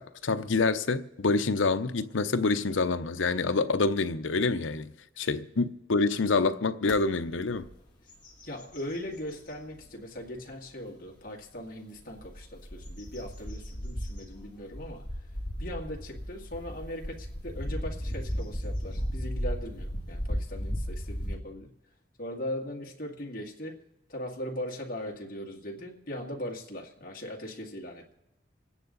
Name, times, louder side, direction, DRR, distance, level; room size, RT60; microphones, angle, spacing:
voice 1, 0.0-4.9 5.2-7.7, left 3 dB, 85° left, 0.7 m, -27 dB
sound 1, 6.9-7.0 7.5-7.7 8.1-9.6 10.2-10.3 12.0-21.3, equal, 25° left, 2.8 m, -35 dB
voice 2, 8.4-15.3 15.6-21.7 22.2-23.8 24.1-28.1, left 1 dB, 45° left, 2.1 m, -39 dB
27.5 x 9.7 x 4.0 m
head